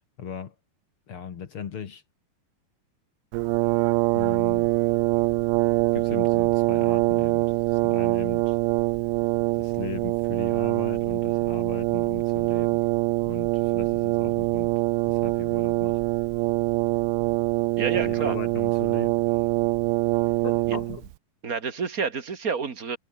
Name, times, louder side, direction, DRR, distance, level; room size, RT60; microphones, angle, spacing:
voice 1, 0.2-0.6 1.1-2.0 4.1-4.7 5.9-8.6 9.6-12.8 13.2-14.7 15.1-16.0 17.9-19.3 20.4-21.1, left 7 dB, 50° left, 1.8 m, -38 dB
Brass instrument, 3.3-21.1, right 22 dB, 80° right, 2.4 m, -24 dB
voice 2, 17.8-18.4 20.7-20.8 21.4-23.0, right 5 dB, 35° right, 1.5 m, -29 dB
omnidirectional pair, 4.5 m